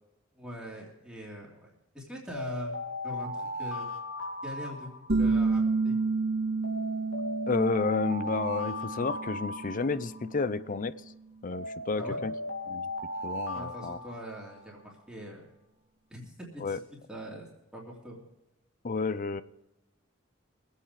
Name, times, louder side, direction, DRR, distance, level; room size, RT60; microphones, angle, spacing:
voice 1, 0.4-2.7 3.0-4.0 4.4-4.9 5.2-6.0 11.9-12.2 13.5-15.5 16.1-16.8 17.1-18.2, equal, 5° right, -4 dB, 2.7 m, -42 dB
sound 1, 2.3-5.5 6.6-10.4 11.5-14.7, left 1 dB, 70° left, 2.6 m, -37 dB
sound 2, 5.1-10.5, right 3 dB, 50° right, 2.2 m, -30 dB
voice 2, 7.5-11.0 11.4-12.3 12.7-12.9 13.2-14.0 16.6-16.8 18.8-19.4, left 4 dB, 40° left, 15 dB, 0.6 m, -31 dB
22.5 x 8.4 x 4.9 m, 0.92 s
head